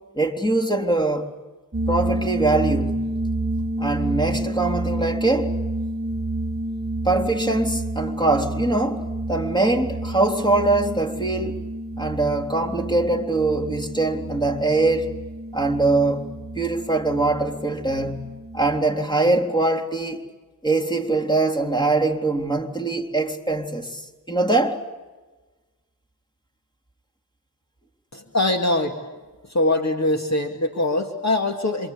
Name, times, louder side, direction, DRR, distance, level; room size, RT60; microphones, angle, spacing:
voice 1, 0.1-1.3 1.9-3.1 3.8-5.5 7.0-11.6 12.0-15.1 15.5-16.3 16.6-18.3 18.5-20.2 20.6-24.0 24.3-24.8, right 2 dB, 10° left, 3.6 m, -22 dB
sound 1, 1.7-18.8, right 1 dB, 25° right, 1.5 m, -29 dB
voice 2, 28.1-29.0 29.5-31.9, left 2 dB, 45° left, 2.3 m, -23 dB
27.5 x 25.0 x 8.5 m
cardioid pair, 45°, 39 cm